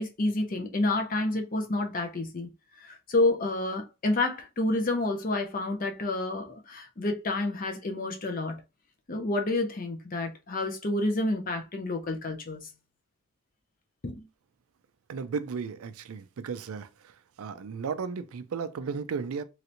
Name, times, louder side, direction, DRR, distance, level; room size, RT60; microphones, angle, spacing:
voice 1, 0.0-2.5 2.8-8.6 9.1-12.7 14.0-14.3, left 2 dB, 40° left, 0.6 m, -29 dB
voice 2, 15.1-16.9 17.4-19.4, right 5 dB, 75° right, 0.4 m, -34 dB
3.2 x 2.9 x 2.5 m
head